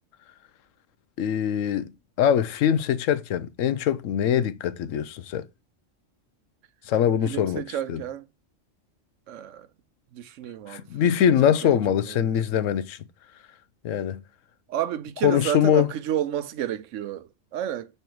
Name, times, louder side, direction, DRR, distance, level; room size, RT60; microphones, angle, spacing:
voice 1, 1.2-1.9 2.2-5.4 6.9-8.0 10.7-13.0 13.8-14.2 15.2-15.9, left 9 dB, 85° left, 1.0 m, -23 dB
voice 2, 7.2-8.2 9.3-9.7 10.1-11.8 12.0-12.2 14.7-17.9, right 10 dB, 80° right, 0.9 m, -31 dB
5.5 x 4.4 x 4.5 m
omnidirectional pair, 1.3 m